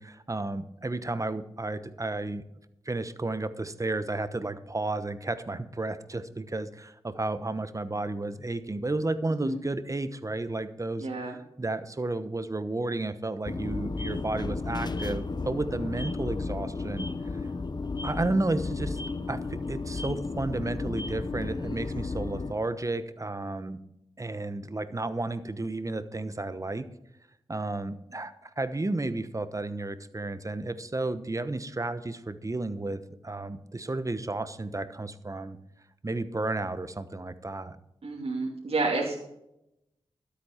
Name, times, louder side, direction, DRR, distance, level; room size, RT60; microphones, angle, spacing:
voice 1, 0.0-2.4 2.8-17.1 18.0-19.0 19.3-23.8 24.2-26.8 27.5-35.6 36.0-37.8, right 2 dB, 30° right, 12 dB, 1.1 m, -32 dB
voice 2, 11.0-11.4 38.0-39.2, right 3 dB, 70° right, -3 dB, 2.6 m, -29 dB
sound 1, 13.5-22.5, left 3 dB, 40° left, 0.9 m, -33 dB
13.0 x 8.5 x 5.9 m, 0.82 s
cardioid pair, 60°, 11 cm